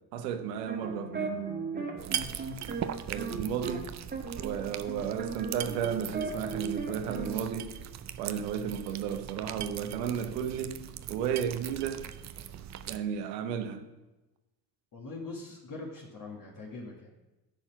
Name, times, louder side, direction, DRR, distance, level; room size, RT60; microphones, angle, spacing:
voice 1, 0.0-2.4 3.1-3.9 4.4-7.7 8.2-10.8 11.1-12.0 12.9-13.8, right 8 dB, 85° right, 0.9 m, -34 dB
sound 1, 0.5-3.8 4.1-7.4, right 4 dB, 20° right, 1.7 m, -37 dB
sound 2, 2.0-13.0, right 10 dB, 35° right, 0.5 m, -40 dB
voice 2, 14.9-17.1, left 3 dB, 40° left, 1.8 m, -42 dB
10.5 x 4.3 x 5.9 m
hypercardioid pair, 60°, 48 cm